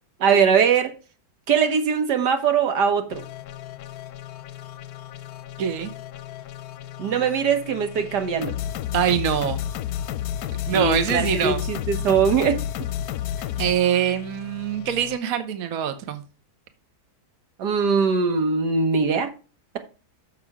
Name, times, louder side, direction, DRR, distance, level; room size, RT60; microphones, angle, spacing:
voice 1, 0.2-0.9 1.5-3.2 7.0-8.5 10.7-12.6 17.6-19.3, right 6 dB, 80° right, 1.8 m, -21 dB
sound 1, 3.1-15.2, left 10 dB, 70° left, 1.0 m, -32 dB
voice 2, 5.6-5.9 8.9-9.6 10.7-11.6 13.6-16.2, right 9 dB, 60° right, 1.3 m, -24 dB
6.9 x 6.3 x 4.8 m
omnidirectional pair, 1.8 m